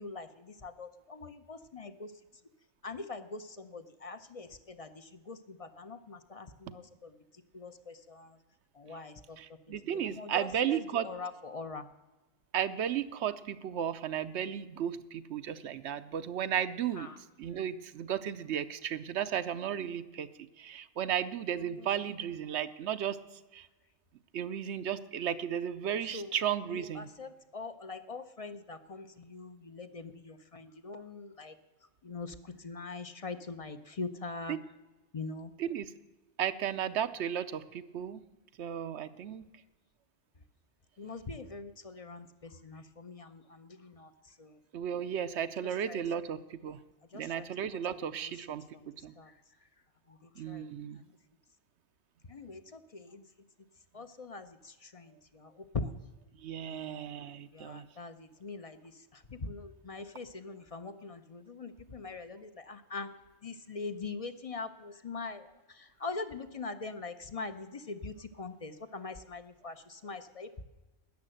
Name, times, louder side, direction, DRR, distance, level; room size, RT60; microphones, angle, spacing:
voice 1, 0.0-2.1 2.8-7.1 7.5-8.4 8.7-9.4 9.9-11.8 17.0-17.2 21.6-22.2 26.1-26.3 26.7-31.6 32.0-34.6 35.1-35.5 41.0-44.6 45.6-46.0 47.1-47.5 47.9-48.4 48.7-48.9 49.2-49.3 50.1-50.7 51.0-51.1 52.3-53.3 53.9-55.9 56.7-57.1 57.5-63.1 63.4-70.6, left 4 dB, 35° left, 10 dB, 0.7 m, -43 dB
voice 2, 9.4-11.1 12.5-17.1 17.4-20.3 20.6-23.2 23.5-23.7 24.3-27.1 34.5-34.6 35.6-35.9 36.4-38.2 38.6-39.4 44.7-46.8 47.1-48.6 49.0-49.1 50.4-51.0 56.4-57.9, right 9 dB, 75° right, 12 dB, 0.9 m, -34 dB
13.0 x 9.8 x 7.8 m, 1.2 s
omnidirectional pair, 1.2 m